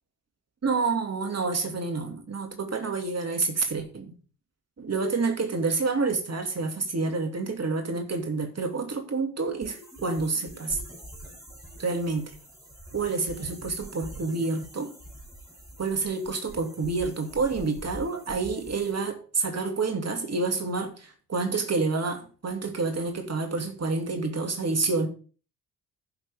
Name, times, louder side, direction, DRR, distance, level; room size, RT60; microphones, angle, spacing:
voice 1, 0.6-4.1 4.8-10.8 11.8-12.3 12.9-14.9 15.8-25.1, right 4 dB, 35° right, 2.7 m, -28 dB
sound 1, 9.6-18.9, right 1 dB, 5° right, 6.6 m, -45 dB
15.0 x 6.0 x 3.8 m
figure-of-eight pair, 45°, 46 cm